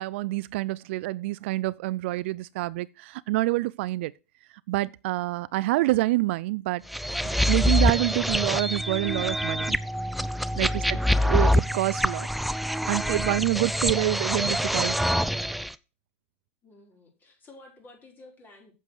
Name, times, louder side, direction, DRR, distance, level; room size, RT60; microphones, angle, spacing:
voice 1, 0.0-4.1 4.7-7.1 7.5-9.8 10.6-12.3 12.9-15.0, right 18 dB, 60° right, 0.4 m, -27 dB
sound 1, 6.9-15.7, equal, ahead, 0.5 m, -25 dB
voice 2, 10.5-11.1 16.6-18.7, left 2 dB, 25° left, 5.1 m, -51 dB
7.7 x 7.5 x 6.5 m
hypercardioid pair, 115°, 7 cm